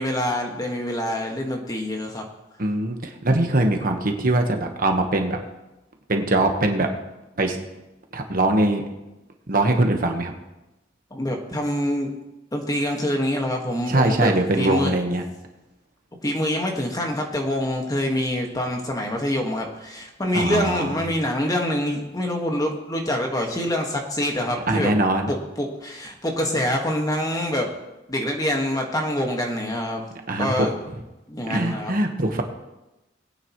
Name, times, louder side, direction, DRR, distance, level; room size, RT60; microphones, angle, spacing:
voice 1, 0.0-2.2 11.1-12.1 12.5-14.9 16.2-24.9 25.3-27.7 28.1-30.0 30.4-30.7 31.3-31.9, left 1 dB, 20° left, 1 dB, 1.7 m, -25 dB
voice 2, 2.6-5.4 6.1-6.9 7.4-7.6 8.1-8.8 9.5-10.3 13.9-15.2 20.3-21.0 24.7-25.3 30.3-30.7 31.5-32.4, right 2 dB, 50° right, 4 dB, 1.3 m, -22 dB
20.5 x 9.2 x 3.1 m, 0.99 s
head